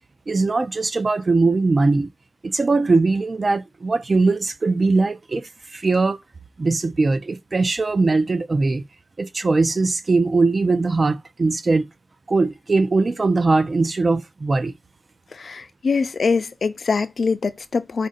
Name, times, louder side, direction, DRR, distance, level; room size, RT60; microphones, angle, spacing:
voice 1, 0.3-2.1 2.4-6.2 6.6-8.8 9.2-11.9 12.3-14.7, right 3 dB, 40° right, 0.5 m, -20 dB
voice 2, 15.3-18.1, left 4 dB, 65° left, 0.5 m, -23 dB
5.1 x 2.6 x 3.9 m
wide cardioid pair, 130°, 0 cm